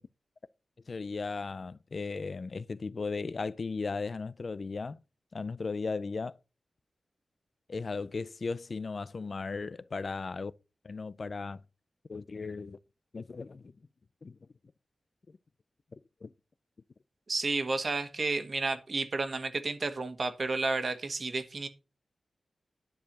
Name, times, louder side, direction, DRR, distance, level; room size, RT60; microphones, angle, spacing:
voice 1, 0.9-5.0 5.3-6.3 7.7-10.5 10.8-11.6 12.1-12.8 13.1-13.7 14.2-14.4 16.2-16.3, left 4 dB, 50° left, 0.4 m, -36 dB
voice 2, 17.3-21.7, right 3 dB, 50° right, 1.3 m, -31 dB
10.0 x 4.6 x 6.7 m
wide cardioid pair, 115°, 0 cm